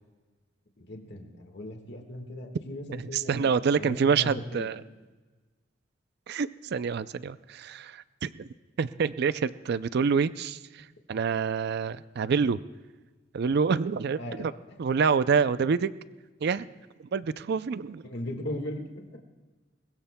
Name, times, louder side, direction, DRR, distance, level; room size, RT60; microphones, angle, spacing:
voice 1, 0.8-4.7 14.2-14.5 18.0-19.0, left 1 dB, 65° left, 2 dB, 1.7 m, -38 dB
voice 2, 2.9-4.8 6.3-8.5 8.8-12.6 13.3-14.5 14.8-15.9 16.4-16.7 17.0-18.0, right 5 dB, 60° right, 15 dB, 0.4 m, -27 dB
22.0 x 21.0 x 2.2 m, 1.3 s
head